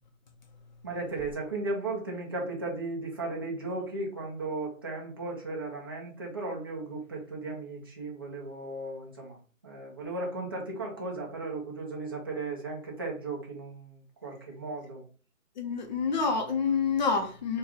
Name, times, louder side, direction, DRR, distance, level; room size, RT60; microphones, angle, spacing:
voice 1, 0.8-9.4 9.6-15.0, right 2 dB, 20° right, 0.5 m, -36 dB
voice 2, 15.6-17.6, left 5 dB, 30° left, 0.6 m, -28 dB
4.2 x 2.3 x 3.6 m
hypercardioid pair, 150°, 42 cm